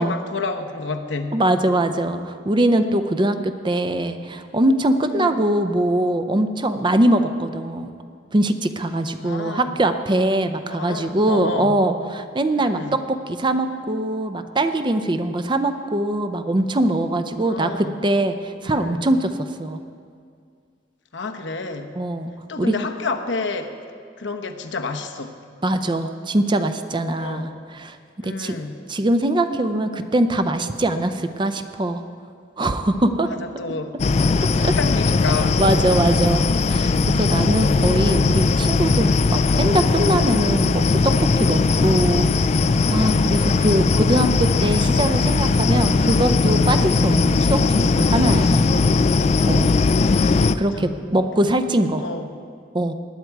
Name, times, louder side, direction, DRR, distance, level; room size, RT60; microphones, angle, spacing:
voice 1, 0.0-1.4 5.1-5.4 9.2-9.7 10.6-11.7 12.6-12.9 17.3-17.9 18.6-19.0 21.1-22.0 22.5-23.7 24.2-25.3 27.1-27.5 28.2-28.8 33.2-33.9 34.5-35.6 50.5-51.0 52.0-52.3, left 3 dB, 80° left, 5 dB, 0.9 m, -30 dB
voice 2, 1.3-3.4 3.6-7.9 8.3-19.8 22.0-22.3 22.6-22.8 25.6-28.0 28.2-28.6 28.9-32.0 32.6-33.3 34.6-34.7 35.6-42.3 42.9-48.8 49.4-49.7 50.4-52.0 52.7-52.9, right 1 dB, 25° right, 9 dB, 0.5 m, -22 dB
sound 1, 34.0-50.5, left 3 dB, 35° left, 0.3 m, -19 dB
19.5 x 9.3 x 4.7 m, 2.2 s
head